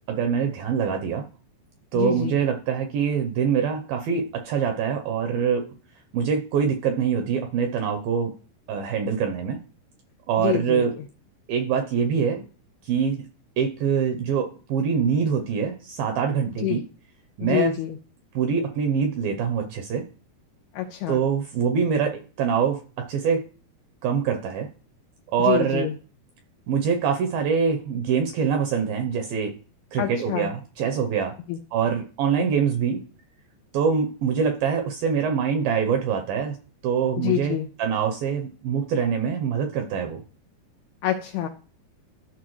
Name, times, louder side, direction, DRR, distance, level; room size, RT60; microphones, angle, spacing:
voice 1, 0.1-1.2 1.9-5.6 6.1-8.3 8.7-9.6 10.3-10.9 11.5-12.4 12.9-13.2 13.6-16.8 17.4-17.7 18.4-20.0 21.1-23.4 24.0-24.7 25.3-25.9 26.7-29.5 29.9-31.3 31.7-33.0 33.7-36.6 36.8-40.2, right 6 dB, 80° right, 5 dB, 2.1 m, -24 dB
voice 2, 1.9-2.4 10.4-10.9 16.6-16.8 17.4-18.0 20.7-21.2 25.4-25.9 30.0-30.5 31.5-31.6 37.2-37.7 41.0-41.5, left 12 dB, 85° left, 4 dB, 2.3 m, -26 dB
14.0 x 4.6 x 3.1 m, 0.38 s
omnidirectional pair, 5.0 m